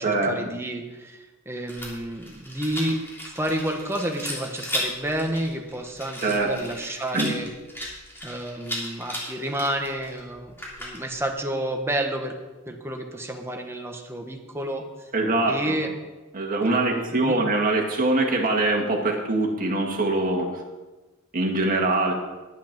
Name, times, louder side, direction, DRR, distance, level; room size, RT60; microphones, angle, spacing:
voice 1, 0.0-3.0 3.3-7.5 8.2-12.3 12.7-15.1 15.5-15.9 16.6-17.4, right 1 dB, 10° right, 3 dB, 1.2 m, -30 dB
Rattle, 1.7-11.3, equal, 10° left, 3.1 m, -36 dB
voice 2, 15.1-15.8 16.3-20.5 21.3-22.1, right 2 dB, 40° right, 1 dB, 1.9 m, -23 dB
11.0 x 8.4 x 6.0 m, 1.2 s
head